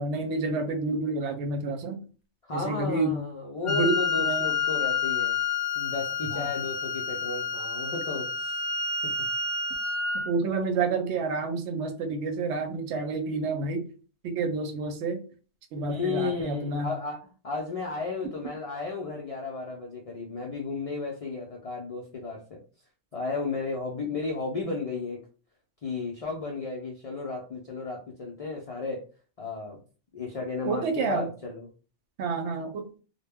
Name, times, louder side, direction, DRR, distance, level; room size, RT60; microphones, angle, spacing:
voice 1, 0.0-2.0 2.5-3.2 3.6-4.5 6.3-6.5 10.2-13.9 14.2-15.2 15.7-16.9 30.7-31.3 32.2-32.9, right 3 dB, 70° right, 6 dB, 0.8 m, -29 dB
voice 2, 2.4-5.4 5.8-8.6 9.0-9.1 15.9-22.6 23.1-25.2 25.8-29.0 29.4-29.8 30.1-31.7, left 3 dB, 60° left, -1 dB, 0.3 m, -34 dB
Wind instrument woodwind instrument, 3.7-10.3, left 5 dB, 80° left, 0.9 m, -29 dB
2.1 x 2.1 x 3.4 m, 0.38 s
omnidirectional pair, 1.2 m